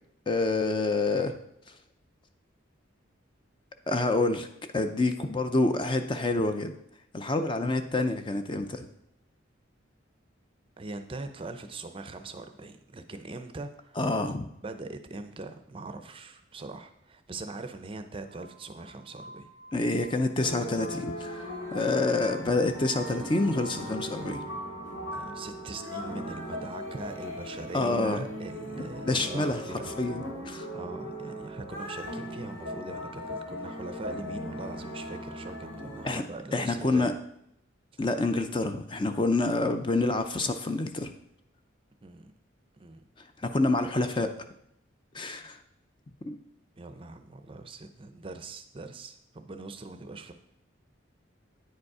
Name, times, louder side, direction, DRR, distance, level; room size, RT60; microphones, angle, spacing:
voice 1, 0.3-1.4 3.9-4.5 4.7-6.8 7.1-8.9 14.0-14.4 19.7-24.4 27.7-28.3 29.0-30.7 36.0-36.2 36.5-37.1 38.0-41.1 43.4-44.3 45.1-45.6 46.3-46.4, left 2 dB, 25° left, 8 dB, 0.4 m, -27 dB
voice 2, 10.8-14.0 14.6-19.5 25.1-29.9 30.7-37.1 42.0-42.3 42.8-43.0 46.8-50.3, right 2 dB, 25° right, 8 dB, 0.5 m, -41 dB
Glass, 18.3-25.0, right 1 dB, 60° left, 1.9 m, -49 dB
sound 1, 20.4-36.2, equal, 80° left, 3.0 m, -38 dB
9.2 x 5.2 x 4.8 m, 0.75 s
head